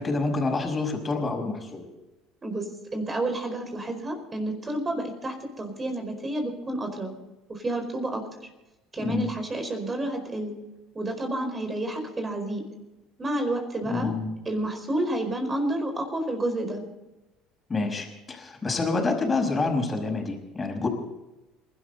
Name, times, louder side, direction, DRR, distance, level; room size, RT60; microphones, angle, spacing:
voice 1, 0.0-1.8 9.0-9.3 13.8-14.3 17.7-20.9, left 3 dB, 25° left, 3 dB, 5.4 m, -27 dB
voice 2, 2.4-7.1 7.5-8.2 8.9-10.6 10.9-12.6 13.2-14.1 14.4-16.8, right 1 dB, 25° right, 5 dB, 4.7 m, -30 dB
28.0 x 12.5 x 4.1 m, 1.0 s
hypercardioid pair, 65°, 0 cm